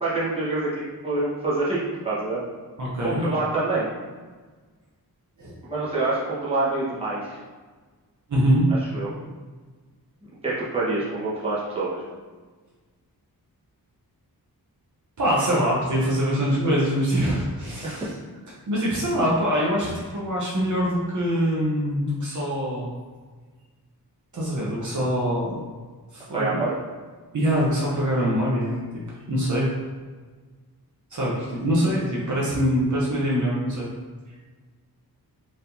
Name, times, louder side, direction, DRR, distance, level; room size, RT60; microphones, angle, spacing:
voice 1, 0.0-2.4 3.0-3.9 5.7-7.4 8.9-9.1 10.4-12.0 17.8-18.1 19.1-19.3 26.3-26.8, right 2 dB, 15° right, -9 dB, 1.2 m, -26 dB
voice 2, 2.8-3.2 5.4-5.5 8.3-8.7 15.2-18.1 18.7-22.9 24.3-25.6 26.1-26.6 27.3-28.8 29.3-29.7 31.1-33.9, equal, 50° right, -6 dB, 0.9 m, -24 dB
4.5 x 3.5 x 2.7 m, 1.4 s
wide cardioid pair, 160°, 37 cm